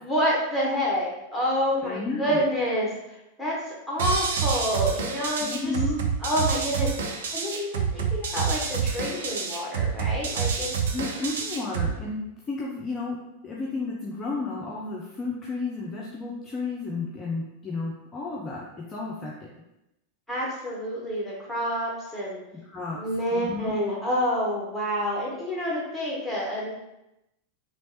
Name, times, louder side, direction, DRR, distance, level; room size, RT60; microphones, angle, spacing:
voice 1, 0.0-2.9 3.4-3.6 3.9-5.8 6.2-10.7 20.3-22.4 23.0-26.7, equal, ahead, -6 dB, 1.3 m, -28 dB
voice 2, 1.8-2.4 5.4-6.0 10.9-13.2 13.4-19.5 22.6-23.0 23.3-23.7, left 3 dB, 20° left, -4 dB, 0.5 m, -32 dB
sound 1, 4.0-12.0, right 6 dB, 60° right, 0.4 m, -28 dB
3.2 x 3.0 x 2.9 m, 0.89 s
figure-of-eight pair, 90°, 0 cm